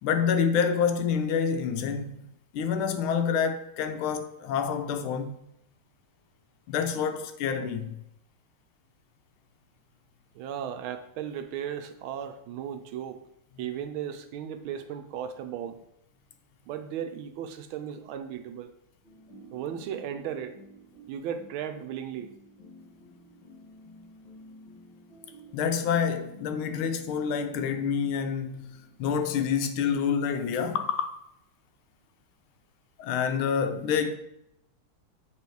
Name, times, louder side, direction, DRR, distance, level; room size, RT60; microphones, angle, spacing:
voice 1, 0.0-2.2 2.5-5.3 6.7-8.0 25.5-28.7 29.0-31.2 33.0-34.1, left 7 dB, 75° left, 1.4 m, -27 dB
voice 2, 10.3-13.2 13.6-15.8 16.7-18.7 19.5-20.6 21.1-22.3, right 9 dB, 75° right, 1.3 m, -36 dB
sound 1, 19.0-29.1, right 2 dB, 60° left, 2.2 m, -52 dB
7.7 x 3.1 x 4.5 m
omnidirectional pair, 2.4 m